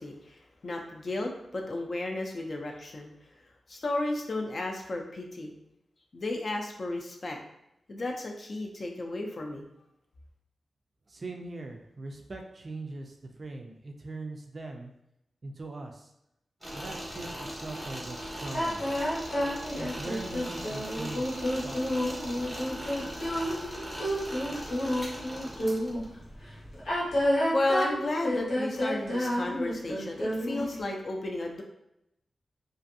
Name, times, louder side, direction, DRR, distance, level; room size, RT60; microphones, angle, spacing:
voice 1, 0.0-3.1 3.7-5.5 6.1-7.4 7.9-9.7 27.3-31.6, left 2 dB, 45° left, 2 dB, 0.4 m, -33 dB
voice 2, 11.1-14.9 15.4-16.1 16.7-18.8 19.8-22.1, right 2 dB, 40° right, 2 dB, 0.3 m, -41 dB
sound 1, 16.6-27.3, equal, 10° right, 0.8 m, -40 dB
sound 2, 18.5-26.0 26.7-30.8, equal, 85° left, 1.1 m, -30 dB
2.5 x 2.4 x 2.6 m, 0.81 s
wide cardioid pair, 140°, 0 cm